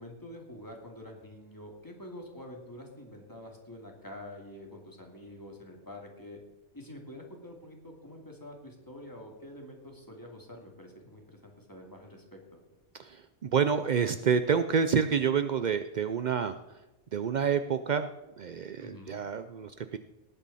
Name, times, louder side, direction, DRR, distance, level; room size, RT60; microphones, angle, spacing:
voice 1, 0.0-6.4 6.7-12.4 18.8-19.2, left 1 dB, 15° left, 0 dB, 2.5 m, -47 dB
voice 2, 13.0-16.6 17.1-18.1 18.4-20.0, right 6 dB, 80° right, 10 dB, 0.4 m, -28 dB
18.5 x 9.2 x 4.2 m, 1.0 s
omnidirectional pair, 1.5 m